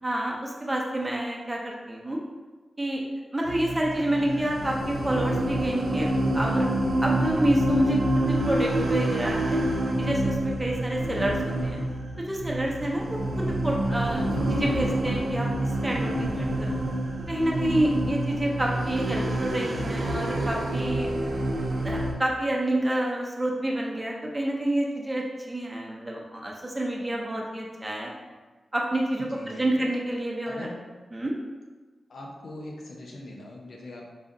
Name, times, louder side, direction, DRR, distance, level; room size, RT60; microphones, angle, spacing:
voice 1, 0.0-2.2 2.8-3.0 3.3-6.7 7.0-9.6 10.0-11.8 12.2-16.8 17.3-21.1 21.8-28.1 28.7-30.7 31.1-31.3, right 1 dB, 20° right, -2 dB, 0.7 m, -28 dB
sound 1, 3.5-22.1, right 1 dB, 75° right, 0.5 m, -27 dB
voice 2, 17.8-18.2 29.1-29.8 30.5-30.8 32.1-34.1, left 1 dB, 75° left, -1 dB, 0.6 m, -41 dB
4.8 x 2.4 x 2.7 m, 1.3 s
cardioid pair, 65°, 0 cm